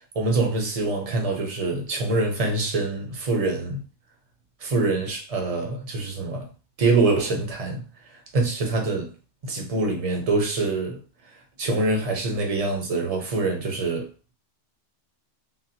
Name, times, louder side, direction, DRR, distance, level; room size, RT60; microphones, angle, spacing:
voice 1, 0.1-3.8 4.6-6.5 6.8-9.1 9.4-11.0 11.3-14.1, right 3 dB, 35° right, 0.8 m, -25 dB
3.8 x 2.1 x 2.7 m
omnidirectional pair, 1.2 m